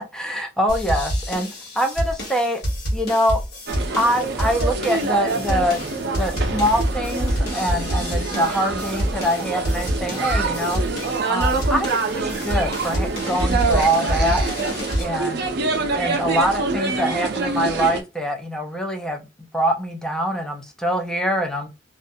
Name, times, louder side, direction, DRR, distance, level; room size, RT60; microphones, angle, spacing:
voice 1, 0.1-1.5 1.8-2.6 2.9-3.4 3.9-5.8 6.2-10.8 11.3-14.4 15.0-15.5 16.0-19.2 19.5-21.7, equal, 5° left, 0.5 m, -24 dB
sound 1, 0.7-15.0, equal, 60° left, 1.1 m, -27 dB
sound 2, 3.7-18.0, right 3 dB, 65° right, 0.5 m, -26 dB
2.5 x 2.2 x 2.5 m
head